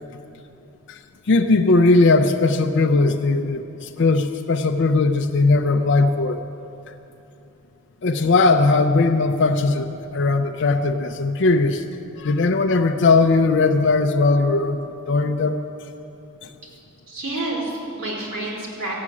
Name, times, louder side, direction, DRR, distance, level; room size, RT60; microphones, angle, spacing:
voice 1, 1.3-6.4 8.0-11.8 12.2-15.6 16.4-16.5, left 3 dB, 60° left, 5 dB, 0.5 m, -19 dB
voice 2, 17.1-19.0, right 2 dB, 70° right, -5 dB, 4.1 m, -29 dB
14.0 x 7.3 x 9.8 m, 2.8 s
head